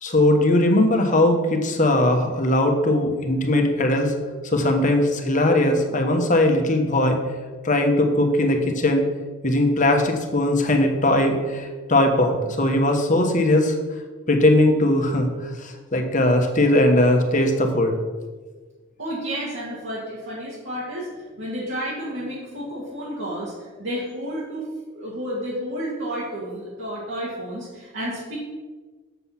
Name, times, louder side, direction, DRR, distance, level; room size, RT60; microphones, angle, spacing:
voice 1, 0.0-4.1 4.4-7.2 7.6-9.0 9.4-13.7 14.3-15.3 15.6-18.0, left 1 dB, 40° left, 4 dB, 1.2 m, -19 dB
voice 2, 19.0-24.7 24.9-28.4, equal, 65° right, -8 dB, 2.3 m, -31 dB
7.9 x 6.9 x 5.8 m, 1.4 s
head